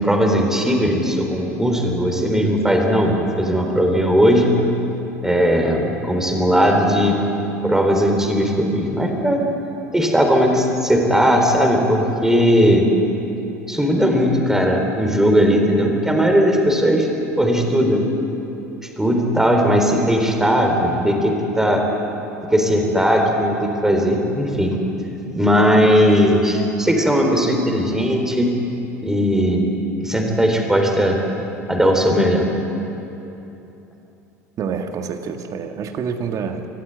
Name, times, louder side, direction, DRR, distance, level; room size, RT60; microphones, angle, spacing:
voice 1, 0.0-4.6 5.2-7.2 7.6-9.5 9.9-12.9 13.7-17.1 17.4-18.0 19.0-21.8 22.5-24.8 25.3-28.5 29.0-29.6 30.0-31.2 31.7-32.5, equal, 5° right, 2 dB, 3.8 m, -18 dB
voice 2, 34.6-36.7, right 6 dB, 40° right, 6 dB, 1.8 m, -27 dB
26.0 x 15.0 x 8.2 m, 3.0 s
figure-of-eight pair, 70°, 9 cm